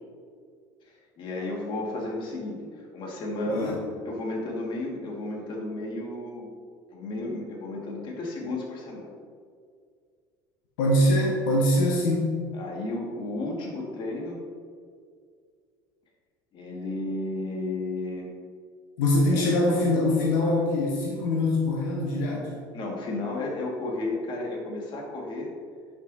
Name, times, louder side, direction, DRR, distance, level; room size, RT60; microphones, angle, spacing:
voice 1, 1.2-3.8 4.1-6.5 6.9-9.1 12.5-14.4 16.5-18.3 19.2-19.5 22.7-25.5, left 2 dB, 50° left, -1 dB, 1.8 m, -33 dB
voice 2, 3.5-3.8 10.8-12.3 19.0-22.5, left 1 dB, 85° left, -3 dB, 1.2 m, -23 dB
10.0 x 6.1 x 2.7 m, 2.1 s
supercardioid pair, 90°, 11 cm